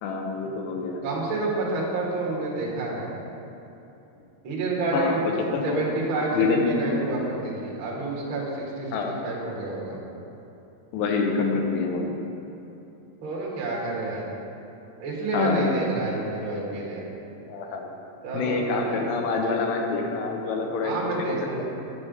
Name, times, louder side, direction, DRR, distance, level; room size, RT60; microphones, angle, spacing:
voice 1, 0.0-1.0 4.9-5.2 5.5-7.2 8.9-9.2 10.9-12.3 15.3-15.7 17.5-17.9 18.3-21.6, left 4 dB, 80° left, 2 dB, 2.9 m, -27 dB
voice 2, 1.0-3.1 4.4-5.2 5.6-9.0 9.2-10.0 13.2-14.2 15.0-17.1 18.2-18.6 18.9-19.0 20.8-21.6, right 2 dB, 60° right, -4 dB, 1.3 m, -29 dB
9.8 x 5.5 x 5.2 m, 2.9 s
omnidirectional pair, 4.9 m